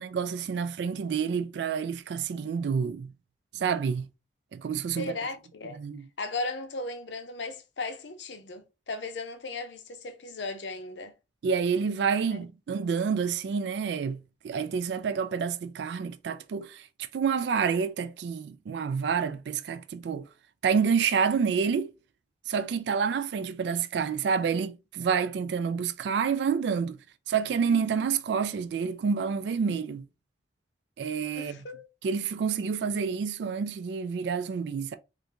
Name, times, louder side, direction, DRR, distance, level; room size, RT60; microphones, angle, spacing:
voice 1, 0.0-3.1 3.5-4.1 4.5-5.1 5.8-6.1 11.4-20.3 20.6-21.9 22.5-27.0 27.3-30.1 31.0-31.6 32.0-35.0, right 6 dB, 65° right, 0.3 m, -28 dB
voice 2, 5.0-5.8 6.2-11.1 12.3-12.4 31.4-31.9, left 3 dB, 75° left, 0.7 m, -36 dB
3.3 x 2.5 x 2.9 m
head